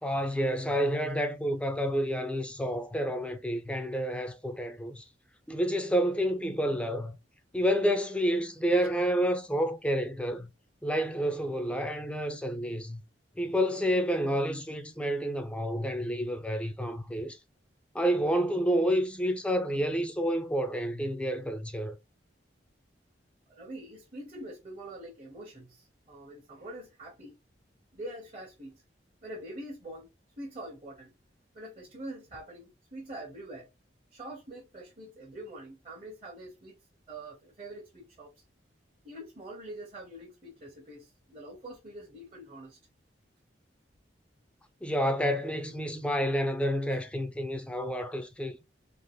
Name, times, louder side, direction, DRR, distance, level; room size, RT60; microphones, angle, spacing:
voice 1, 0.0-5.0 5.5-7.2 7.5-10.5 10.8-13.0 13.4-17.4 17.9-22.0 44.8-48.6, equal, 5° left, 0.4 m, -29 dB
voice 2, 23.5-27.4 27.9-28.8 29.2-30.1 30.4-31.1 31.5-33.7 34.1-36.7 37.1-38.3 39.0-42.8 46.9-47.0, right 1 dB, 35° right, 0.9 m, -44 dB
3.4 x 2.4 x 2.2 m
head